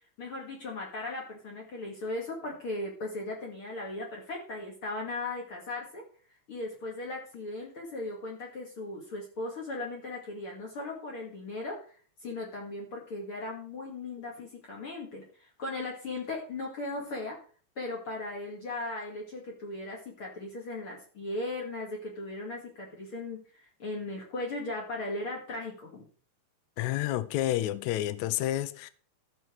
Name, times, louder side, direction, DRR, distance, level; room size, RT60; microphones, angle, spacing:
voice 1, 0.2-6.0 6.5-11.8 12.2-17.4 17.8-26.0, left 2 dB, 45° left, 3.1 m, -37 dB
voice 2, 26.8-28.9, left 14 dB, 75° left, 1.9 m, -29 dB
13.5 x 6.4 x 4.7 m
omnidirectional pair, 3.5 m